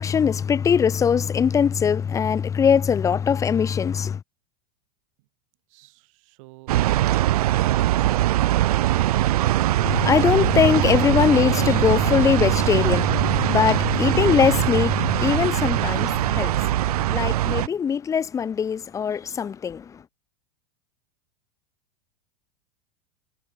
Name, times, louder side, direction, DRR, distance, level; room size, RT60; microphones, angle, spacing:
voice 1, 0.0-4.2 9.8-16.5 17.1-20.0, left 7 dB, 15° left, 0.7 m, -21 dB
voice 2, 5.7-8.6, right 25 dB, 60° right, 5.7 m, -49 dB
sound 1, 6.7-17.7, right 14 dB, 85° right, 0.9 m, -22 dB
supercardioid pair, 135°, 19 cm